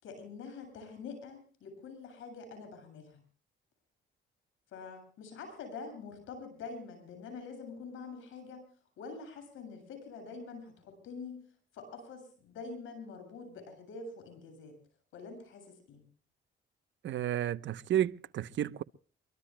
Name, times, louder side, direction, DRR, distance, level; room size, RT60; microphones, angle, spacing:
voice 1, 0.0-3.2 4.7-8.6 9.0-11.4 11.7-14.8 15.1-16.0, left 4 dB, 85° left, 7.6 m, -46 dB
voice 2, 17.0-18.8, right 11 dB, 70° right, 0.9 m, -31 dB
24.5 x 23.5 x 2.2 m
cardioid pair, 90°, 20 cm